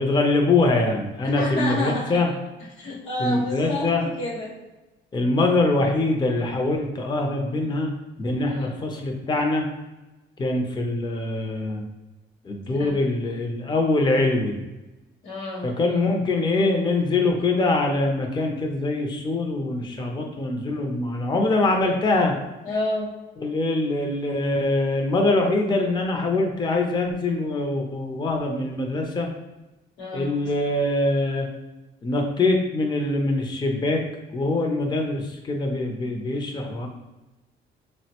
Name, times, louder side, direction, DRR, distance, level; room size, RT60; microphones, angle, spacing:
voice 1, 0.0-2.3 3.2-4.0 5.1-7.9 8.2-9.7 10.4-11.8 12.4-14.6 15.6-22.4 23.4-29.3 30.1-31.5 32.0-34.0 34.3-36.9, left 2 dB, 20° left, 2 dB, 0.5 m, -23 dB
voice 2, 1.2-2.2 2.8-4.5 8.5-8.7 12.7-13.0 15.2-15.7 22.6-23.1 30.0-30.3, left 1 dB, 85° left, -2 dB, 0.9 m, -29 dB
3.7 x 2.1 x 2.8 m, 1.0 s
cardioid pair, 90°, 20 cm